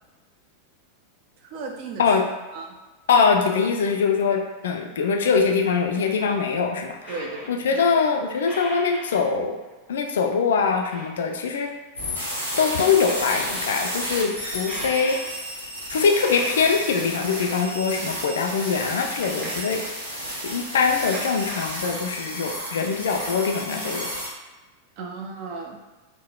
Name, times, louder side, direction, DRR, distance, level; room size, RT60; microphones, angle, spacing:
voice 1, 1.4-2.1 2.5-2.8 7.1-7.7 25.0-25.8, right 4 dB, 45° right, 1 dB, 0.5 m, -35 dB
voice 2, 3.1-7.1 7.5-9.6 9.9-11.7 12.6-15.2 15.9-19.8 20.4-24.1, left 5 dB, 60° left, 3 dB, 0.3 m, -23 dB
sound 1, 6.2-6.3 7.0-7.9 8.3-9.3 9.7-9.8 10.0-10.1 10.5-11.3 11.7-11.8 12.0-12.1 12.3-13.5 14.7-15.6 16.1-17.7 18.2-18.3 18.7-19.8 20.8-21.7 22.3-22.4 22.6-22.7, equal, 10° right, 0.7 m, -39 dB
sound 2, 12.0-24.3, equal, 80° right, 0.8 m, -32 dB
3.5 x 2.0 x 2.2 m, 1.2 s
figure-of-eight pair, 90°, 0 cm